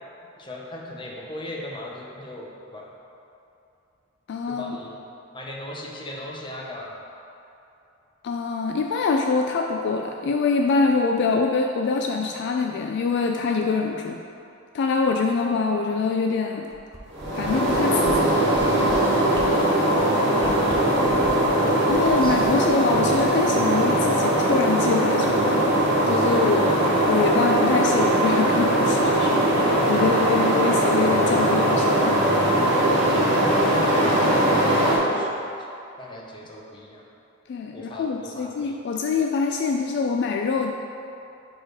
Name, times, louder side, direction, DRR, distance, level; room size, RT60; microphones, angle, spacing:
voice 1, 0.4-2.9 4.5-5.0 5.3-7.0 19.8-21.5 22.2-22.4 33.8-35.3 36.0-37.0 37.7-38.8, left 1 dB, 25° left, -2 dB, 0.7 m, -38 dB
voice 2, 4.3-4.8 8.2-14.2 14.7-16.7 17.3-18.4 20.9-21.3 21.9-25.5 26.1-26.8 27.1-29.5 29.9-32.2 37.5-40.7, left 4 dB, 60° left, 2 dB, 0.3 m, -24 dB
sound 1, 16.7-17.7 18.0-18.2 18.5-19.0 19.3-19.5 19.9-20.0 20.4-21.5 21.9-23.5 23.8-23.9, right 1 dB, 20° right, 0.6 m, -40 dB
sound 2, 17.1-35.0, right 1 dB, 60° right, 1.5 m, -20 dB
4.9 x 4.5 x 4.6 m, 2.7 s
head